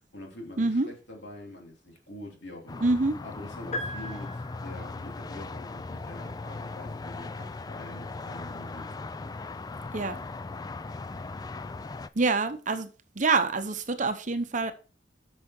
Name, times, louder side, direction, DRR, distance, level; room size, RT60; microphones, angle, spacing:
voice 1, 0.0-2.8 3.2-9.3, left 1 dB, 70° left, 3.1 m, -45 dB
voice 2, 0.6-0.9 2.8-3.1 9.9-10.2 12.1-12.9 13.2-14.7, right 3 dB, 45° right, 0.8 m, -26 dB
sound 1, 2.7-12.1, left 3 dB, 20° left, 0.3 m, -38 dB
sound 2, 3.7-5.0, left 1 dB, 40° left, 1.1 m, -37 dB
8.5 x 6.3 x 4.4 m
head